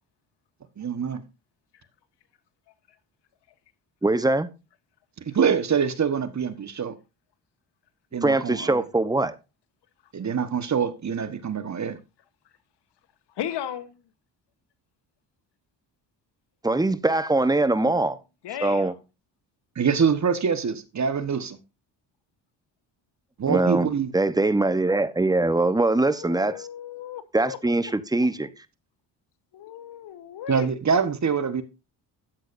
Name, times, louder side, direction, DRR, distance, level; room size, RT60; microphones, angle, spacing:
voice 1, 0.8-1.2 5.2-6.9 8.1-8.8 10.1-12.0 19.7-21.6 23.4-24.1 30.5-31.6, right 6 dB, 40° right, 1.3 m, -25 dB
voice 2, 4.0-4.5 8.2-9.4 16.6-18.2 18.6-18.9 23.5-23.9 24.1-26.7 27.3-28.5, right 2 dB, 10° right, 1.0 m, -22 dB
voice 3, 13.4-14.0 18.4-18.9 26.1-27.6 28.2-28.3 29.5-30.7, left 10 dB, 65° left, 1.2 m, -35 dB
13.0 x 8.4 x 2.6 m
cardioid pair, 80°, 44 cm